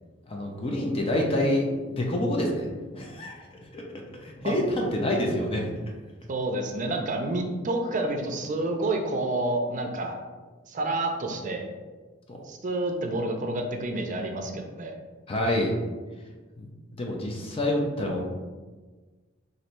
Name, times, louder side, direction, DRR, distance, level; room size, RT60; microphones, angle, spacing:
voice 1, 0.3-2.7 2.9-3.8 4.2-5.7 12.3-12.4 15.3-15.7 16.6-18.2, left 1 dB, 30° left, 0 dB, 0.5 m, -27 dB
voice 2, 6.3-10.2 10.7-11.7 12.4-14.9, right 2 dB, 40° right, 3 dB, 0.5 m, -29 dB
3.1 x 2.6 x 4.3 m, 1.3 s
head